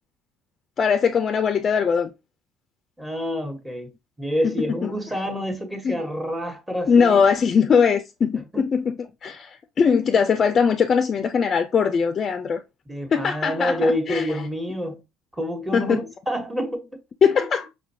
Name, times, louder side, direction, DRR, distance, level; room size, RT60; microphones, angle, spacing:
voice 1, 0.8-2.1 5.8-6.0 6.9-8.9 9.2-12.6 13.1-14.3 15.7-16.0 17.2-17.7, left 6 dB, 40° left, 0.4 m, -20 dB
voice 2, 3.0-7.2 8.5-8.7 12.9-15.0 15.3-17.0, equal, 10° right, 1.2 m, -28 dB
5.3 x 2.5 x 2.8 m
supercardioid pair, 95°, 0 cm